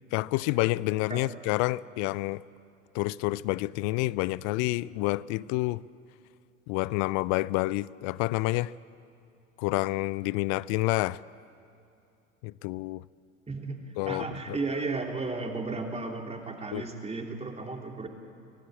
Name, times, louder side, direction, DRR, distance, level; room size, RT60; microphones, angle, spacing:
voice 1, 0.1-2.4 2.9-5.8 6.7-8.7 9.6-11.2 12.4-13.0 14.0-14.3 16.7-16.8, left 20 dB, 45° left, 0.5 m, -28 dB
voice 2, 13.5-18.1, right 3 dB, 15° right, 2.8 m, -34 dB
25.0 x 17.0 x 8.6 m
figure-of-eight pair, 75°, 39 cm